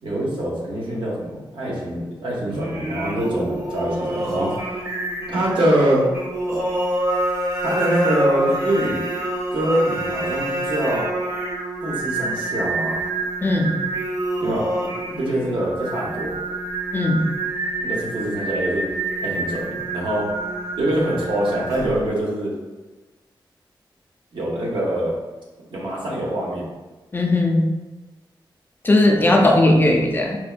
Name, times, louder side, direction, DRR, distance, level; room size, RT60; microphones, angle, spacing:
voice 1, 0.0-4.9 5.3-6.1 7.6-9.0 9.5-11.0 11.8-13.0 14.4-14.7 15.0-16.3 17.8-18.9 19.2-20.3 20.8-22.5 24.3-25.1 25.7-26.6 29.1-29.4, right 1 dB, 80° right, -4 dB, 0.9 m, -24 dB
Singing, 2.5-22.1, right 2 dB, 40° right, 0.8 m, -27 dB
voice 2, 13.4-13.7 16.9-17.3 27.1-27.7 28.8-30.4, left 1 dB, 25° left, 1 dB, 0.4 m, -17 dB
4.3 x 2.2 x 2.4 m, 1.2 s
wide cardioid pair, 115°, 8 cm